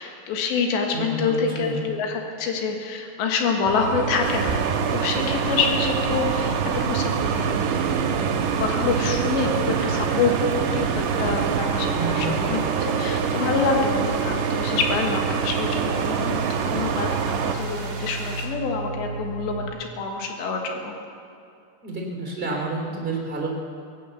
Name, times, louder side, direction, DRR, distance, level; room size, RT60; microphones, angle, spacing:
voice 1, 0.0-10.3 10.7-20.9, left 5 dB, 75° left, 2 dB, 3.8 m, -27 dB
voice 2, 0.9-1.8 11.9-12.3 21.8-23.5, right 3 dB, 15° right, -1 dB, 2.8 m, -29 dB
sound 1, 3.6-19.7, right 3 dB, 40° left, 4.7 m, -34 dB
sound 2, 3.7-17.5, right 7 dB, 80° right, 3.1 m, -25 dB
sound 3, 4.2-18.5, right 4 dB, 45° right, 2.2 m, -37 dB
17.0 x 10.0 x 8.2 m, 2.6 s
omnidirectional pair, 5.2 m